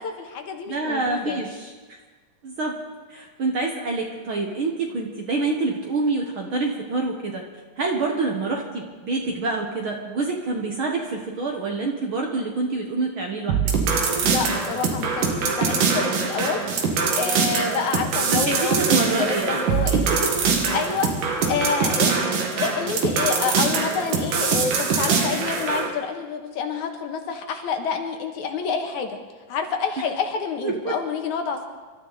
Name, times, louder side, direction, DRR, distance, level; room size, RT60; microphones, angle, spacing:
voice 1, 0.0-1.5 14.2-20.1 20.7-21.2 21.5-29.2 29.5-31.7, left 5 dB, 70° left, 5 dB, 2.6 m, -28 dB
voice 2, 0.7-1.7 2.4-2.8 3.1-7.4 7.8-13.6 18.3-19.6 19.9-20.3 30.6-30.9, right 3 dB, 55° right, 1 dB, 1.6 m, -26 dB
sound 1, 13.5-25.9, right 5 dB, 85° right, 3.4 m, -23 dB
27.0 x 13.0 x 4.1 m, 1.4 s
omnidirectional pair, 3.7 m